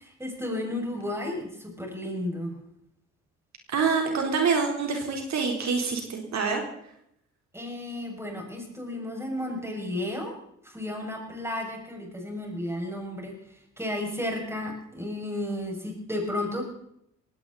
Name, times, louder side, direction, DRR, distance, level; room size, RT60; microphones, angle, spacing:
voice 1, 0.0-2.5 7.5-10.3 10.6-16.6, left 1 dB, 10° right, 0 dB, 6.8 m, -33 dB
voice 2, 3.7-6.6, right 5 dB, 65° right, 2 dB, 4.0 m, -26 dB
19.0 x 17.0 x 4.2 m, 0.74 s
cardioid pair, 90°, 30 cm